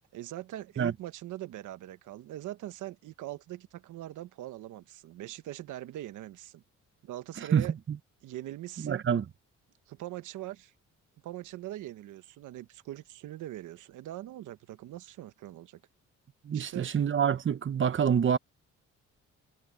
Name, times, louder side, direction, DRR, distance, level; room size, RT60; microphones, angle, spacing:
voice 1, 0.1-6.6 7.0-7.7 8.2-9.1 9.9-10.7 11.2-15.8 16.5-16.9, right 14 dB, 80° right, 1.1 m, -42 dB
voice 2, 7.5-8.0 8.8-9.2 16.4-18.4, right 8 dB, 40° right, 1.1 m, -27 dB
cardioid pair, 90°, 30 cm